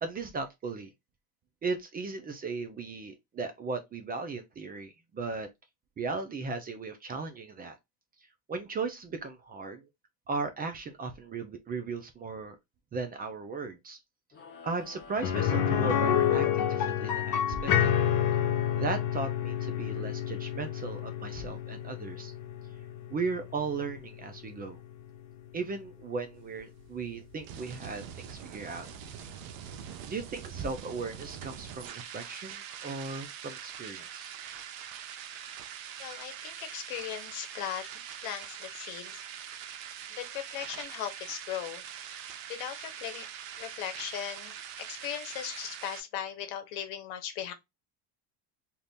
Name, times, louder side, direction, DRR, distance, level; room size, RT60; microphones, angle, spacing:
voice 1, 0.0-0.9 1.6-5.5 6.0-7.8 8.5-9.9 10.3-12.6 12.9-14.0 14.6-17.7 18.8-22.3 23.1-24.8 25.5-28.9 30.1-34.3, right 4 dB, 20° right, 0.5 m, -36 dB
sound 1, 14.3-17.3, left 6 dB, 25° left, 0.8 m, -49 dB
sound 2, 15.2-25.0 25.3-25.4 27.8-27.9, left 9 dB, 50° left, 1.1 m, -29 dB
sound 3, 26.3-46.0, right 9 dB, 80° right, 0.7 m, -43 dB
voice 2, 36.0-37.9 38.2-39.2 40.1-41.8 42.5-43.3 43.6-47.5, left 10 dB, 70° left, 1.0 m, -38 dB
2.8 x 2.5 x 3.4 m
cardioid pair, 130°, 41 cm